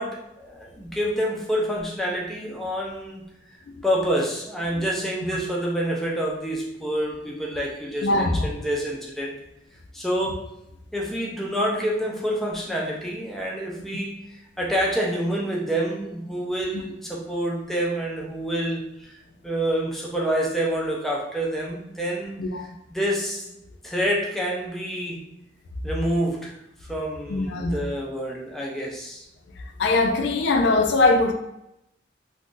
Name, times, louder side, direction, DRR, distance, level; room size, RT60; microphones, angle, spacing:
voice 1, 0.0-3.2 3.8-9.4 9.9-10.4 10.9-19.2 19.4-22.3 22.9-23.6 23.8-25.2 25.8-26.6 26.9-29.3, equal, ahead, -3 dB, 0.4 m, -27 dB
voice 2, 8.0-8.5 16.7-16.8 22.4-22.7 27.3-27.8 29.8-31.3, left 2 dB, 75° left, 5 dB, 0.4 m, -21 dB
2.5 x 2.3 x 3.7 m, 0.84 s
head